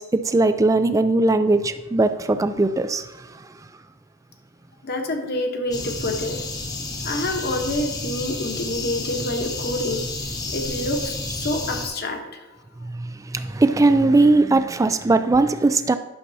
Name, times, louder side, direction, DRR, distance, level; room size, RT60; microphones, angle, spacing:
voice 1, 0.0-3.4 12.8-16.0, right 2 dB, 15° right, 10 dB, 0.3 m, -19 dB
voice 2, 4.8-6.7 7.0-10.1 10.5-12.5 12.8-12.9, left 1 dB, 45° left, 4 dB, 1.0 m, -27 dB
sound 1, 5.7-11.9, left 2 dB, 15° left, 0.8 m, -30 dB
11.0 x 6.6 x 2.7 m, 1.1 s
head